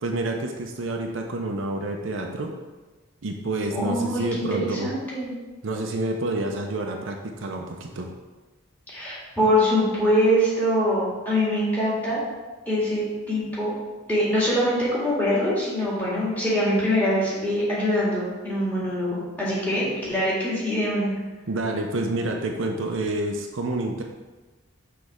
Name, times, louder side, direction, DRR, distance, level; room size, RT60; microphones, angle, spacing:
voice 1, 0.0-2.5 3.2-5.0 5.6-8.1 21.5-24.0, right 2 dB, 70° right, 2 dB, 0.6 m, -28 dB
voice 2, 3.7-5.3 8.9-12.2 12.7-13.7 14.1-21.1, equal, 10° left, -8 dB, 1.9 m, -23 dB
6.3 x 3.4 x 4.9 m, 1.2 s
head